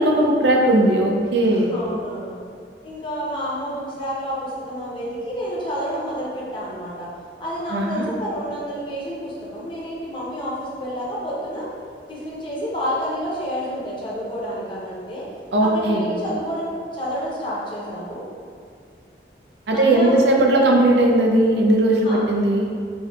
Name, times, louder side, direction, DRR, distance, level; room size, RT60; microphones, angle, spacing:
voice 1, 0.0-1.7 7.7-8.1 15.5-16.1 19.7-22.7, right 1 dB, 80° right, 0 dB, 0.5 m, -18 dB
voice 2, 1.5-2.3 2.8-7.1 7.4-11.6 12.1-15.2 15.6-18.2 19.7-20.3 22.0-22.2, equal, 30° left, -6 dB, 0.8 m, -29 dB
5.4 x 2.8 x 2.4 m, 2.3 s
head